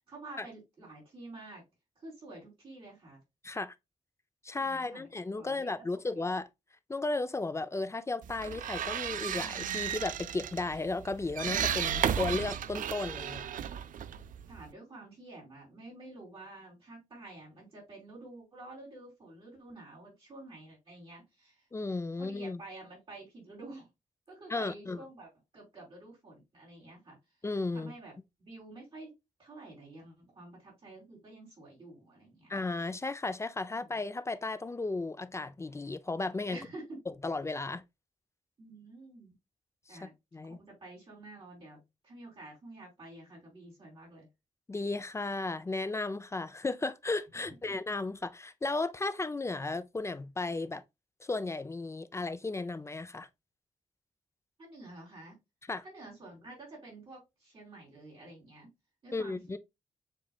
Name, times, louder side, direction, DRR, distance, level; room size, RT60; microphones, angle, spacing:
voice 1, 0.1-1.6 1.9-3.2 4.6-6.1 14.5-21.7 22.2-23.9 24.3-27.2 27.7-28.1 28.4-32.5 33.6-34.0 36.5-37.0 38.6-39.3 39.9-40.1 40.5-44.3 47.5-47.6 54.6-55.4 55.8-58.7 59.0-59.6, right 2 dB, 40° right, 3.2 m, -50 dB
voice 2, 3.4-3.7 4.4-6.5 6.9-13.5 21.7-22.6 24.5-25.0 27.4-27.9 32.5-36.6 37.2-37.8 39.9-40.6 44.7-50.8 51.2-53.3 55.7-55.8 59.1-59.6, left 3 dB, 20° left, 0.4 m, -34 dB
sound 1, 8.2-14.7, right 9 dB, 80° right, 0.4 m, -34 dB
7.2 x 3.1 x 2.3 m
wide cardioid pair, 130°, 14 cm